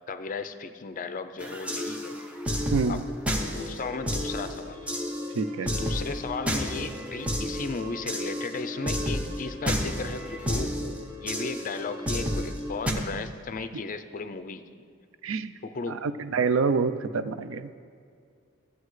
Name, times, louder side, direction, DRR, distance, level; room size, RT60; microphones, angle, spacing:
voice 1, 0.1-2.2 2.9-3.0 3.5-4.9 5.6-14.8 15.6-16.1, left 4 dB, 45° left, 10 dB, 0.5 m, -35 dB
sound 1, 1.4-12.9, equal, 5° right, 0.7 m, -31 dB
sound 2, 3.2-13.2, right 2 dB, 45° right, 0.9 m, -48 dB
voice 2, 5.3-5.7 15.2-15.5 15.9-17.7, right 4 dB, 85° right, 12 dB, 0.4 m, -27 dB
14.0 x 8.1 x 3.2 m, 2.3 s
head